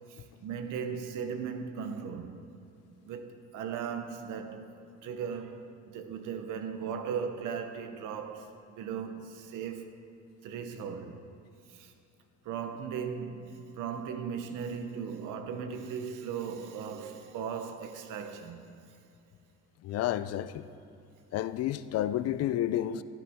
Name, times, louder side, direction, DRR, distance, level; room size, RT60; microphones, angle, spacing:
voice 1, 0.1-2.4 3.1-10.0 10.4-11.2 11.7-11.9 12.4-18.6, right 7 dB, 80° right, 1.0 m, -37 dB
voice 2, 19.8-20.7 21.3-23.0, left 12 dB, 55° left, 0.4 m, -30 dB
12.0 x 11.0 x 3.6 m
cardioid pair, 135°, 31 cm